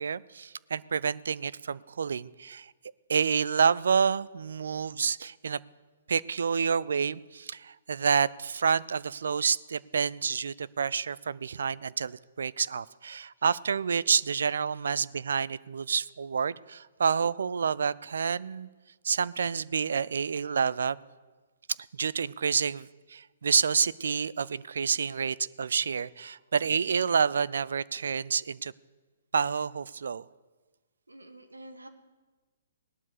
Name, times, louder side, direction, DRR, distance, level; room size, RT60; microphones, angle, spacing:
voice 1, 0.0-2.7 3.1-5.6 6.1-18.7 19.0-21.0 22.0-28.7 29.3-30.3, right 6 dB, 65° right, 20 dB, 0.5 m, -28 dB
voice 2, 13.1-13.5 14.7-14.9 26.3-26.4 31.1-31.9, right 1 dB, 80° right, 8 dB, 1.7 m, -50 dB
18.0 x 12.0 x 6.7 m, 1.3 s
figure-of-eight pair, 125°, 0 cm